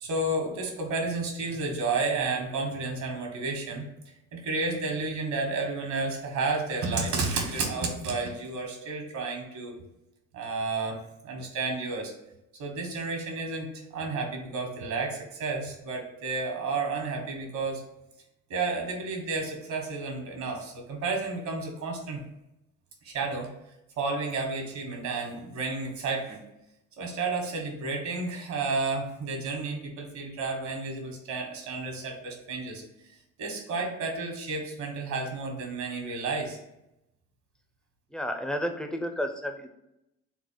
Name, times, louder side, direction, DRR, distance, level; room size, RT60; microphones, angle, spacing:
voice 1, 0.0-3.9 4.3-9.8 10.3-12.1 12.6-13.7 13.9-17.8 18.5-22.2 23.0-23.5 24.0-26.4 27.0-32.8 33.4-36.6, right 3 dB, 70° right, 2 dB, 1.3 m, -31 dB
voice 2, 38.1-39.7, equal, 5° left, 5 dB, 0.5 m, -31 dB
4.1 x 2.0 x 4.5 m, 0.86 s
cardioid pair, 90°, 30 cm